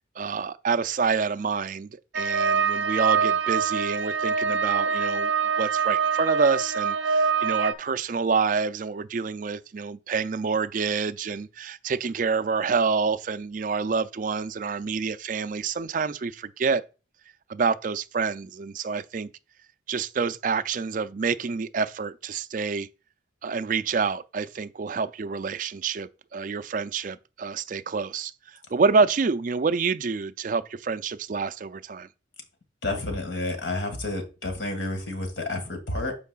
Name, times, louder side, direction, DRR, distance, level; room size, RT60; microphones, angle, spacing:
voice 1, 0.2-5.3 5.6-16.8 17.5-19.3 19.9-22.9 23.4-32.1, right 5 dB, 45° right, 0.4 m, -27 dB
sound 1, 2.1-7.7, right 6 dB, 65° right, 0.8 m, -24 dB
voice 2, 32.8-36.2, left 2 dB, 75° left, 1.9 m, -30 dB
12.0 x 4.6 x 2.4 m
head